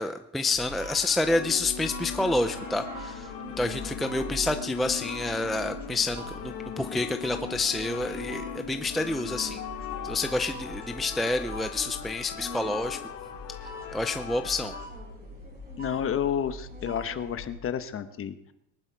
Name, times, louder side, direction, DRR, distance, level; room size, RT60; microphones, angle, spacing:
voice 1, 0.0-3.3 3.6-9.6 10.0-13.0 13.9-14.7, left 2 dB, ahead, 7 dB, 0.5 m, -28 dB
sound 1, 0.5-17.5, equal, 20° right, 6.8 m, -42 dB
sound 2, 1.2-14.9, left 9 dB, 60° left, 2.6 m, -39 dB
voice 2, 15.8-18.5, left 8 dB, 35° left, 10 dB, 1.1 m, -30 dB
21.5 x 11.5 x 4.7 m, 0.85 s
cardioid pair, 140°, 40 cm